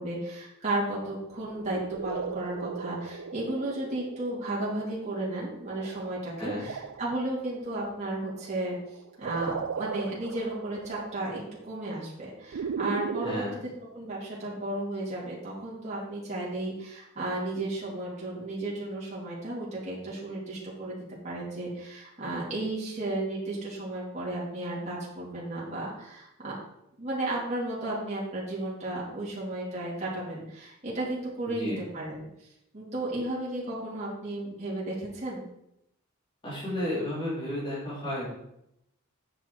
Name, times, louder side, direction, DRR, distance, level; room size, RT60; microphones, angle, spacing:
voice 1, 0.0-8.8 9.2-13.4 13.9-21.0 21.2-26.5 27.0-32.3 32.7-35.4, right 1 dB, 35° right, -6 dB, 2.7 m, -34 dB
sound 1, 1.3-13.3, right 6 dB, 65° right, 0.4 m, -38 dB
voice 2, 13.2-13.6 31.4-31.8 36.4-38.3, left 1 dB, 25° left, -8 dB, 2.7 m, -32 dB
9.1 x 5.7 x 4.6 m, 0.80 s
head